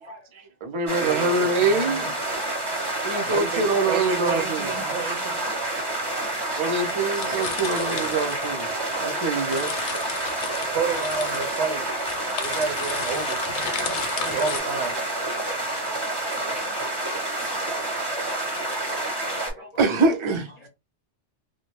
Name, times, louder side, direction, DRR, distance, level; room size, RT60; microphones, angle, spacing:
voice 1, 0.0-2.1 3.0-4.7 6.6-8.7 9.0-9.7 12.3-12.4 15.8-15.9 16.9-17.0 17.8-17.9 18.2-18.4 19.8-20.5, right 3 dB, 50° right, 0.3 m, -25 dB
sound 1, 0.9-19.5, right 2 dB, 25° right, 0.7 m, -28 dB
voice 2, 1.0-2.1 3.3-5.5 7.9-8.2 10.7-11.9 12.4-13.9 14.2-15.0 16.5-16.6, right 5 dB, 85° right, 1.0 m, -30 dB
sound 2, 1.9-2.0 3.8-4.5 5.4-5.5 6.2-6.3 6.5-6.6 6.8-9.1 9.3-14.6, left 7 dB, 85° left, 0.9 m, -35 dB
voice 3, 16.2-17.8 18.1-19.7, left 2 dB, 45° left, 0.7 m, -46 dB
2.6 x 2.0 x 3.0 m
omnidirectional pair, 1.2 m